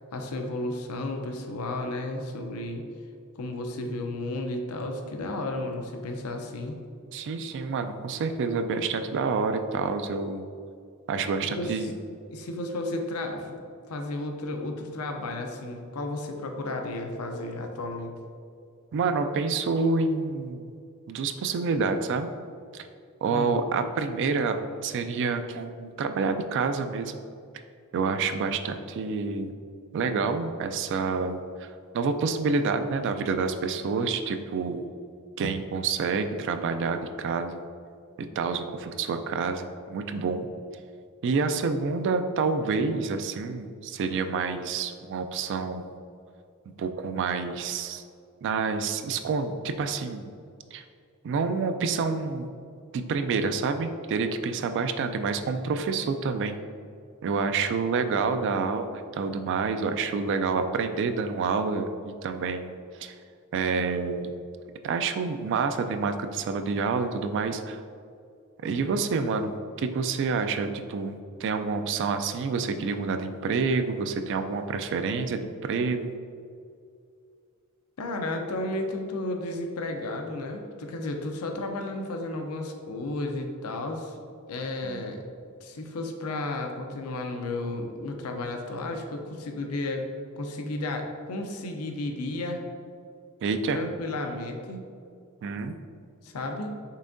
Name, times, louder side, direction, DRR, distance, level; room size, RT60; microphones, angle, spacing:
voice 1, 0.1-2.8 3.4-6.8 11.6-11.9 12.3-13.6 13.9-18.1 23.3-23.6 78.0-84.2 84.5-85.2 85.6-90.1 90.4-92.6 93.7-94.9 96.2-96.7, left 2 dB, 80° left, 4 dB, 0.5 m, -33 dB
voice 2, 7.1-10.4 11.1-11.9 18.9-20.7 21.1-22.3 22.7-22.9 23.2-27.2 27.9-29.5 29.9-34.9 35.4-37.6 38.4-40.5 41.2-45.9 46.8-48.0 48.4-50.3 50.7-50.8 51.2-52.5 52.9-56.6 57.2-62.7 63.0-63.1 63.5-64.3 64.8-67.8 68.6-71.1 71.4-76.1 84.8-85.1 93.4-93.8 95.4-95.7, right 4 dB, 55° right, 8 dB, 0.3 m, -28 dB
5.5 x 3.5 x 2.6 m, 2.3 s
head